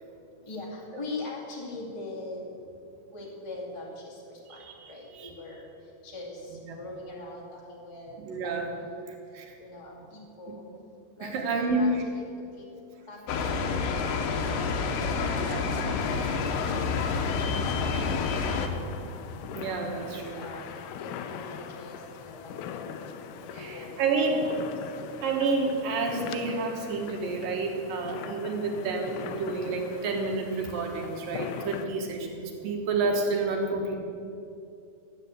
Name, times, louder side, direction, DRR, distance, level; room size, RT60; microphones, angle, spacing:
voice 1, 0.4-2.4 3.1-5.7 6.0-8.9 9.6-10.6 11.2-12.2 12.5-12.6 13.1-14.5 14.8-15.5 19.9-22.9 23.4-24.7, left 2 dB, 20° left, -3 dB, 0.9 m, -42 dB
voice 2, 4.5-5.3 8.2-8.7 9.3-9.5 11.2-12.0 15.4-15.7 19.5-20.4 23.5-24.4 25.2-34.0, right 3 dB, 65° right, 1 dB, 2.9 m, -29 dB
sound 1, 13.3-18.7, left 5 dB, 75° left, 2.5 m, -28 dB
sound 2, 16.0-31.9, left 8 dB, 90° left, 2.8 m, -41 dB
13.5 x 8.3 x 8.0 m, 2.7 s
omnidirectional pair, 4.5 m